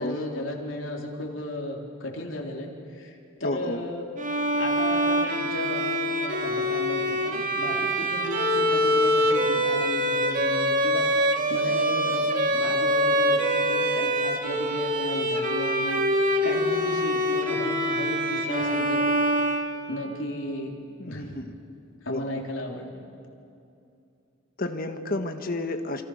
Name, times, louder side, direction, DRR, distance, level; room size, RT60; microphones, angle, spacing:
voice 1, 0.0-4.1 4.6-19.1 19.9-20.8 21.1-21.4 22.0-23.0, left 1 dB, 70° left, 0 dB, 3.8 m, -35 dB
voice 2, 3.4-3.8 21.0-21.5 22.1-22.2 24.6-26.0, left 2 dB, 45° left, 6 dB, 1.6 m, -31 dB
Bowed string instrument, 4.2-20.1, equal, 40° right, 2.7 m, -25 dB
28.5 x 27.0 x 6.6 m, 2.6 s
head